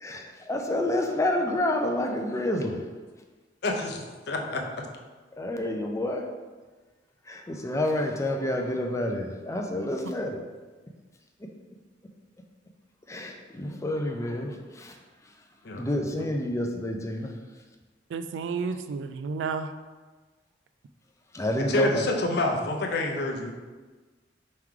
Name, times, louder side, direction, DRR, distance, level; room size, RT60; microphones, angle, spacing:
voice 1, 0.0-2.8 5.4-6.2 7.3-10.4 13.1-15.0 15.8-17.4 21.3-22.1, left 1 dB, 15° left, 3 dB, 0.4 m, -29 dB
voice 2, 3.6-4.6 15.6-15.9 16.2-16.3 21.7-23.5, left 2 dB, 65° left, 2 dB, 0.6 m, -28 dB
voice 3, 18.1-19.7, right 5 dB, 90° right, 10 dB, 0.3 m, -31 dB
3.7 x 3.1 x 4.6 m, 1.3 s
head